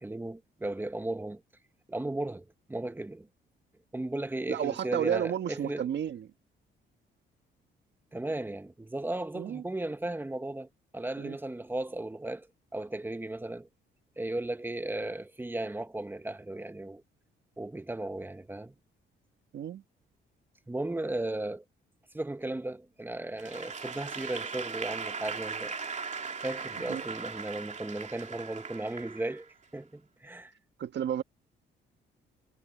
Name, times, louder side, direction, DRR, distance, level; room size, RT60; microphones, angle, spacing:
voice 1, 0.0-1.4 1.9-3.3 3.9-5.8 8.1-10.7 10.9-12.5 12.7-13.7 14.2-17.0 17.6-18.7 20.7-21.6 22.1-25.7 26.4-29.5 29.7-30.5, right 2 dB, 10° right, 1.3 m, -35 dB
voice 2, 4.5-6.3 9.3-9.6 11.2-11.4 19.5-19.8 26.9-27.0 30.8-31.2, right 9 dB, 60° right, 1.6 m, -32 dB
Applause / Crowd, 23.4-29.6, right 5 dB, 35° right, 2.8 m, -39 dB
cardioid pair, 90°, 20 cm